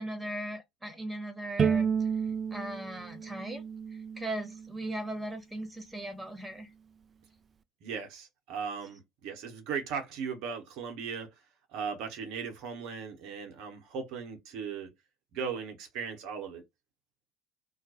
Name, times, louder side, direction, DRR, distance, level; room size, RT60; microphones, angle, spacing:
voice 1, 0.0-2.1 2.5-3.6 3.9-6.7, right 1 dB, 10° right, 1.1 m, -38 dB
Bowed string instrument, 1.6-4.8, right 7 dB, 35° right, 0.4 m, -31 dB
voice 2, 7.8-11.3 11.7-14.9 15.3-16.6, right 6 dB, 65° right, 0.9 m, -37 dB
2.4 x 2.1 x 2.7 m
hypercardioid pair, 60°, 0 cm